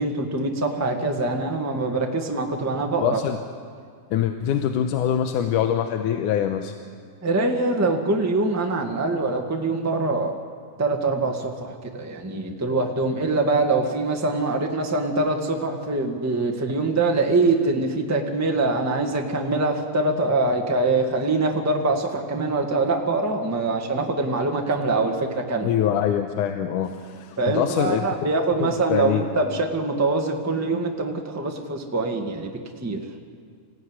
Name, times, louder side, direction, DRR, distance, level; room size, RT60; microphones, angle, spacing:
voice 1, 0.0-3.2 7.2-10.4 10.8-25.7 27.4-32.5 32.8-33.0, right 3 dB, 10° right, 2 dB, 1.1 m, -24 dB
voice 2, 3.0-3.4 4.1-6.7 25.6-28.3 28.6-29.2, left 9 dB, 90° left, 7 dB, 2.4 m, -24 dB
25.5 x 16.0 x 9.8 m, 2.1 s
omnidirectional pair, 3.6 m